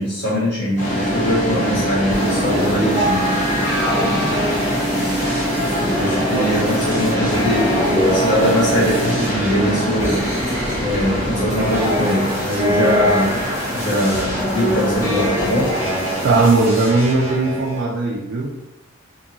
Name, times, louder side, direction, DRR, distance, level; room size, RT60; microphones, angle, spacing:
voice 1, 0.0-3.3 5.9-10.3 10.8-15.7, equal, 55° left, -9 dB, 1.5 m, -21 dB
sound 1, 0.8-16.5, equal, 35° left, 0.7 m, -23 dB
sound 2, 2.1-17.8, equal, 15° right, 0.6 m, -24 dB
voice 2, 16.2-18.5, right 3 dB, 70° right, -2 dB, 0.4 m, -17 dB
2.8 x 2.7 x 2.6 m, 0.99 s
head